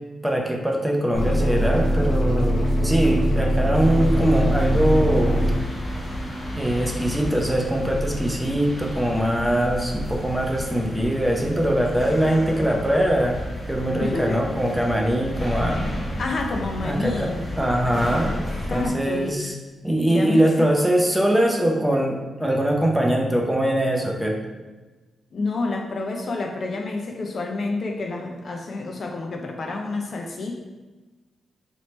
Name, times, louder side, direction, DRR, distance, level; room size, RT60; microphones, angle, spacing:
voice 1, 0.2-5.4 6.6-13.4 13.7-15.8 16.8-18.3 18.7-19.5 19.8-24.4, right 1 dB, 5° right, 0 dB, 0.6 m, -22 dB
sound 1, 1.1-5.5, equal, 70° left, 0.8 m, -21 dB
sound 2, 3.7-18.9, equal, 30° left, 1.1 m, -32 dB
voice 2, 14.0-14.4 16.2-17.5 18.2-19.4 20.1-20.7 25.3-30.6, left 3 dB, 50° left, 2 dB, 0.5 m, -29 dB
3.1 x 3.0 x 4.2 m, 1.2 s
cardioid pair, 105°, 0 cm